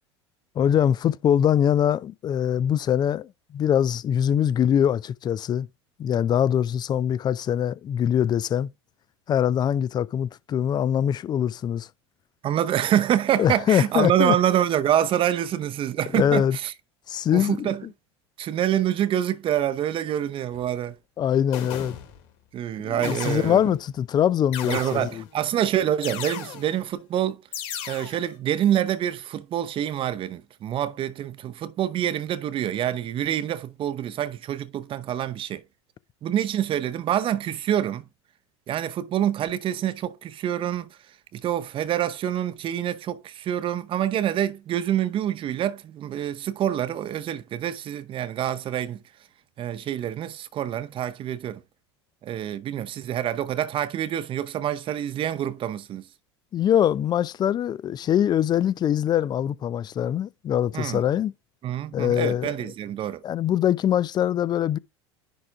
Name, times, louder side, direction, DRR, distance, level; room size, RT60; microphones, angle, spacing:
voice 1, 0.6-5.7 6.0-8.7 9.3-11.9 13.4-14.4 16.1-16.6 17.1-17.7 21.2-22.0 22.8-25.2 56.5-61.3 61.9-62.5 63.2-64.8, left 9 dB, 30° left, 0.4 m, -23 dB
voice 2, 12.4-16.7 17.3-17.9 18.4-21.0 22.5-23.8 24.6-27.4 27.8-35.6 36.2-38.1 38.7-49.0 49.6-51.6 52.2-56.1 60.7-61.0 61.6-63.2, right 11 dB, 35° right, 0.7 m, -26 dB
sound 1, 20.5-20.7 21.5-22.3 23.0-23.8 24.5-25.4 26.0-26.8 27.5-28.3, left 9 dB, 60° left, 2.6 m, -36 dB
10.0 x 3.6 x 3.5 m
hypercardioid pair, 80°, 15 cm